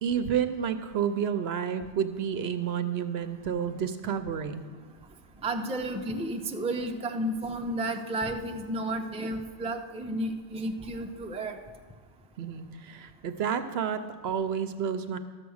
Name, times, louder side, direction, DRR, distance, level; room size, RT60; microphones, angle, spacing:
voice 1, 0.0-4.7 12.4-15.2, right 8 dB, 65° right, 9 dB, 0.8 m, -30 dB
voice 2, 5.4-11.6, right 1 dB, 10° right, 3 dB, 0.5 m, -32 dB
13.0 x 7.0 x 6.3 m, 1.5 s
omnidirectional pair, 1.2 m